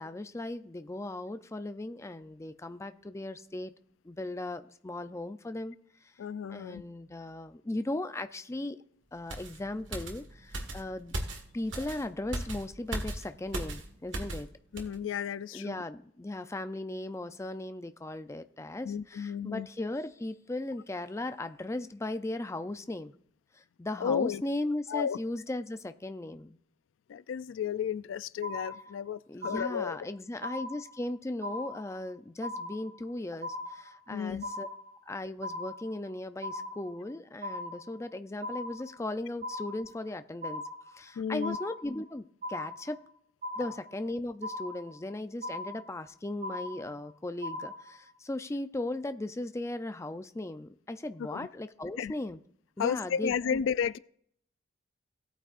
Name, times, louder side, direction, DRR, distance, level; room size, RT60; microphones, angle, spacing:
voice 1, 0.0-3.7 4.0-5.8 6.5-8.8 9.1-11.2 11.5-14.5 15.5-23.2 23.5-26.6 29.3-34.7 35.1-40.6 40.9-43.1 43.6-52.4 52.8-53.6, left 2 dB, 15° left, 0.4 m, -37 dB
voice 2, 6.2-6.8 14.7-15.8 18.8-19.7 24.0-24.4 24.9-25.2 27.1-30.0 34.1-34.5 41.2-41.6 51.2-51.5 52.0-52.1 52.8-54.0, left 7 dB, 90° left, 0.3 m, -33 dB
sound 1, 9.3-14.5 14.8-15.0, right 1 dB, 80° right, 1.6 m, -38 dB
sound 2, 28.4-29.1 29.4-30.1 30.4-31.1 31.4-32.1 32.4-33.1 33.4-34.1 34.4-35.1 35.4-36.1 36.4-37.1 37.4-38.1 38.4-39.1 39.4-40.1 40.4-41.1 41.4-42.1 42.4-43.1 43.4-44.1 44.4-45.1 45.4-46.1 46.4-47.1 47.4-48.1, left 1 dB, 45° right, 2.1 m, -39 dB
17.5 x 8.9 x 2.5 m
head